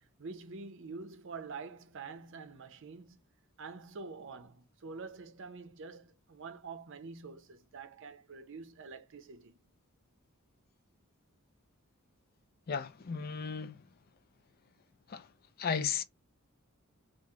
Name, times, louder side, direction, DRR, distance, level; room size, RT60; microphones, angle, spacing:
voice 1, 0.0-3.2 3.6-9.6, right 4 dB, 60° right, 0.6 m, -46 dB
voice 2, 12.7-13.8 15.1-15.3 15.6-16.0, left 6 dB, 45° left, 0.4 m, -34 dB
3.1 x 2.5 x 3.6 m
head